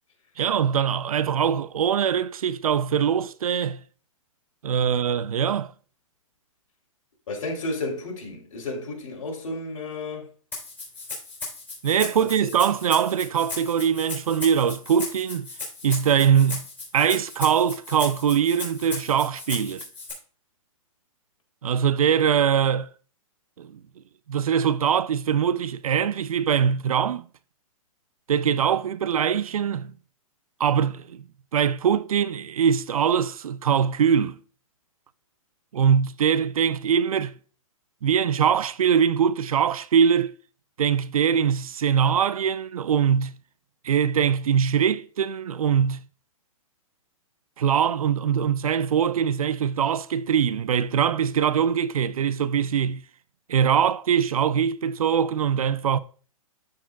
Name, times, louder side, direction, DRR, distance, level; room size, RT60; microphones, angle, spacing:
voice 1, 0.4-3.8 4.6-5.7 11.8-15.5 15.8-16.6 16.9-19.8 21.6-22.9 23.6-23.8 24.3-27.3 28.3-29.9 30.6-31.2 31.5-34.4 35.7-37.4 38.0-40.3 40.8-43.4 43.8-46.0 47.6-53.0 53.5-56.0, right 8 dB, 85° right, 0.5 m, -22 dB
voice 2, 7.3-10.3 12.2-12.3, left 2 dB, 65° left, 3.6 m, -32 dB
Rattle (instrument), 10.5-20.1, left 3 dB, 10° left, 3.4 m, -36 dB
13.0 x 4.8 x 2.4 m
hypercardioid pair, 150°, 18 cm